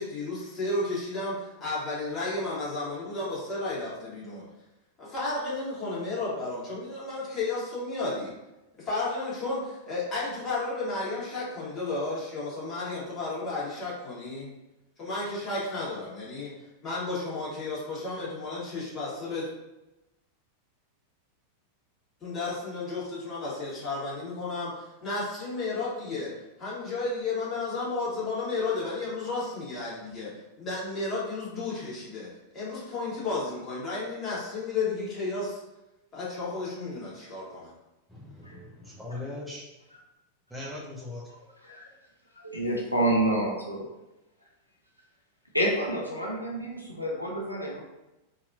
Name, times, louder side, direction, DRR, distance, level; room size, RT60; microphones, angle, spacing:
voice 1, 0.0-4.4 5.0-8.3 8.8-14.5 15.0-16.5 16.8-19.5 22.2-26.3 26.6-30.3 30.6-32.3 32.5-35.6 36.1-37.7, left 3 dB, 25° left, -8 dB, 1.4 m, -32 dB
voice 2, 38.1-39.7 40.5-41.2, left 2 dB, 5° right, -5 dB, 0.6 m, -40 dB
voice 3, 42.4-43.9 45.5-47.8, right 1 dB, 85° left, -2 dB, 0.4 m, -28 dB
2.8 x 2.6 x 2.4 m, 0.99 s
figure-of-eight pair, 90°, 0 cm